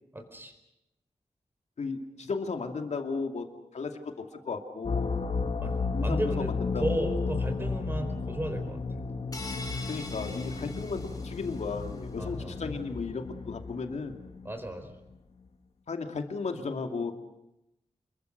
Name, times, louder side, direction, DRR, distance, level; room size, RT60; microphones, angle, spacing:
voice 1, 0.1-0.5 5.6-5.7 6.0-8.8 12.2-12.6 14.4-14.9, right 1 dB, 20° right, 6 dB, 4.4 m, -34 dB
voice 2, 1.8-3.5 3.7-5.2 5.9-7.3 9.9-14.2 15.9-17.1, left 4 dB, 80° left, 6 dB, 2.6 m, -35 dB
sound 1, 4.8-14.7, left 4 dB, 60° left, 1.8 m, -33 dB
sound 2, 9.3-11.8, left 2 dB, 35° left, 3.4 m, -43 dB
28.0 x 22.0 x 6.6 m, 0.89 s
wide cardioid pair, 110°, 11 cm